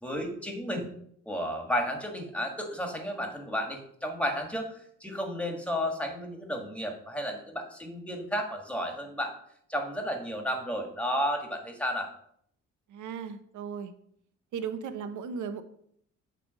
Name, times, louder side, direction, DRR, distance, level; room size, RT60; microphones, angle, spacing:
voice 1, 0.0-0.9 1.3-9.3 9.7-12.1, equal, 5° left, 3 dB, 1.8 m, -32 dB
voice 2, 12.9-13.9 14.5-15.6, right 6 dB, 75° right, 10 dB, 0.8 m, -36 dB
8.4 x 3.4 x 6.3 m, 0.68 s
cardioid pair, 90°, 30 cm